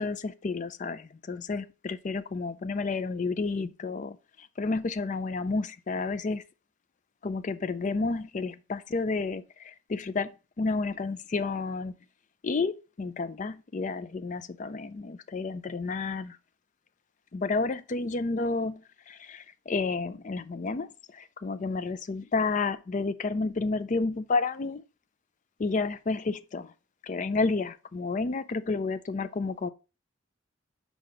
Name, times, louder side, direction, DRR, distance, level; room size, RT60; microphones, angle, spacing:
voice 1, 0.0-6.4 7.2-10.3 10.6-11.9 12.4-16.4 17.3-24.8 25.6-26.7 27.0-29.7, left 3 dB, 35° left, 0.4 m, -31 dB
5.8 x 4.8 x 5.0 m
head